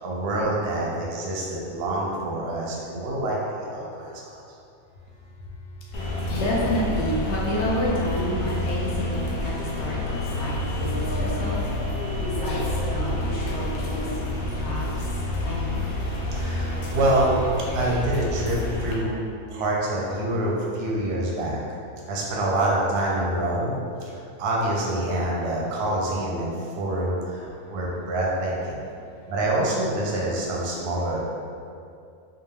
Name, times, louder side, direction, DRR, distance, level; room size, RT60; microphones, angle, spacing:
voice 1, 0.0-4.4 16.3-17.4 17.7-19.1 19.5-21.6 22.1-23.7 24.4-28.8 29.3-31.2, right 1 dB, 60° right, -4 dB, 0.7 m, -26 dB
sound 1, 5.9-18.9, left 1 dB, 85° left, 0.4 m, -28 dB
voice 2, 5.9-11.6 12.2-14.1 14.6-14.9 15.4-15.8, equal, 65° left, -4 dB, 0.8 m, -29 dB
2.5 x 2.2 x 3.2 m, 2.5 s
omnidirectional pair, 1.4 m